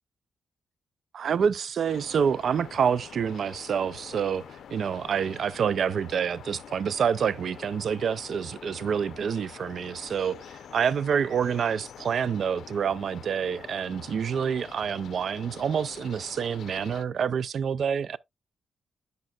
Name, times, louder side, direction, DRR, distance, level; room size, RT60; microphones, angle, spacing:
voice 1, 1.1-4.4 4.7-10.4 10.7-18.2, right 7 dB, 50° right, 0.3 m, -27 dB
sound 1, 1.9-17.0, left 8 dB, 70° left, 0.5 m, -46 dB
10.5 x 5.3 x 2.3 m
wide cardioid pair, 165°, 0 cm